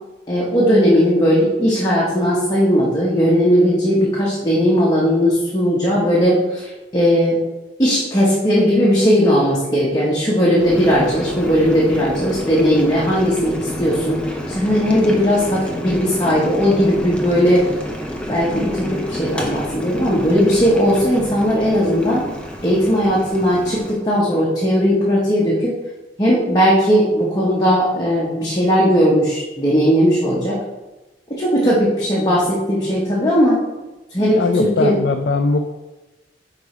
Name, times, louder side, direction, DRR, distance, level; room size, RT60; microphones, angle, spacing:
voice 1, 0.3-7.4 7.8-17.6 18.3-22.2 22.6-25.7 26.2-30.6 31.3-33.6 34.1-34.9, equal, 20° left, -6 dB, 0.9 m, -17 dB
Boiling, 10.5-24.0, equal, 5° left, 0.6 m, -29 dB
voice 2, 34.2-35.6, left 3 dB, 65° left, 4 dB, 0.4 m, -20 dB
4.8 x 4.1 x 4.8 m, 1.1 s
head